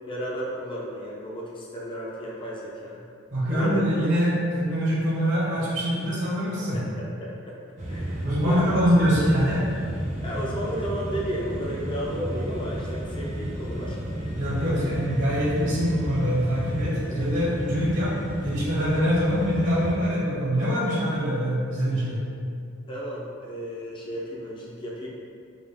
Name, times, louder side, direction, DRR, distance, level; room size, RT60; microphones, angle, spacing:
voice 1, 0.0-3.0 3.5-3.8 6.7-7.5 7.9-8.7 10.2-14.0 14.6-14.9 16.8-16.9 22.9-25.1, equal, 25° left, -4 dB, 0.5 m, -33 dB
voice 2, 3.3-6.8 8.2-9.6 14.3-22.3, equal, 65° right, -7 dB, 1.2 m, -24 dB
sound 1, 7.8-20.0, right 1 dB, 35° right, 0.7 m, -32 dB
5.3 x 2.4 x 3.4 m, 2.3 s
head